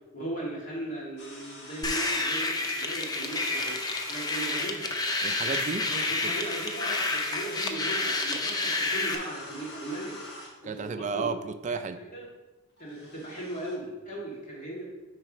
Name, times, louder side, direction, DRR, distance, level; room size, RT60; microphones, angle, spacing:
voice 1, 0.1-3.8 4.1-4.9 5.4-5.6 5.9-10.2 10.6-11.3 12.0-12.3 12.8-14.8, right 1 dB, 40° left, -4 dB, 1.9 m, -38 dB
sound 1, 1.2-2.0 2.6-2.8 3.1-4.7 5.5-5.6 6.1-7.7 8.3-8.4 8.9-10.5 12.8-13.8, left 1 dB, 55° left, 1.2 m, -45 dB
sound 2, 1.8-9.2, left 2 dB, 20° left, 0.5 m, -29 dB
voice 2, 5.2-5.9 6.2-6.4 10.6-12.0, right 4 dB, 35° right, 9 dB, 0.4 m, -33 dB
7.6 x 3.2 x 4.9 m, 1.1 s
head